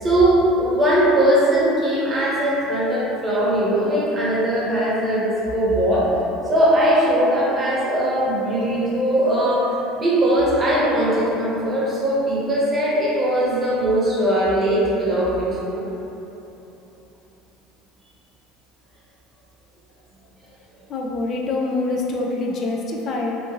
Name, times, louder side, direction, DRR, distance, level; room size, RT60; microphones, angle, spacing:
voice 1, 0.0-6.1 6.5-15.8, right 1 dB, 25° right, -7 dB, 0.9 m, -20 dB
voice 2, 20.9-23.4, left 2 dB, 50° left, -1 dB, 0.3 m, -25 dB
2.8 x 2.5 x 2.6 m, 3.0 s
supercardioid pair, 105°, 0 cm